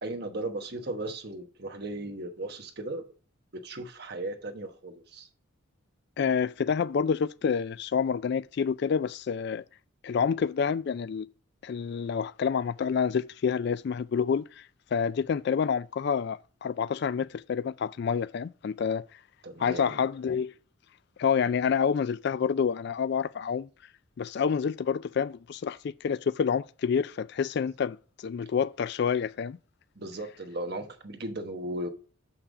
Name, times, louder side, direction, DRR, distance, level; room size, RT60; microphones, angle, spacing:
voice 1, 0.0-3.1 3.5-5.3 19.4-20.0 30.0-31.9, right 2 dB, 50° right, 1.1 m, -36 dB
voice 2, 6.2-9.6 10.0-11.3 11.6-14.6 14.9-19.0 19.6-20.5 21.2-23.7 24.2-28.0 28.2-29.6, left 6 dB, 55° left, 0.3 m, -28 dB
6.8 x 5.8 x 4.8 m
head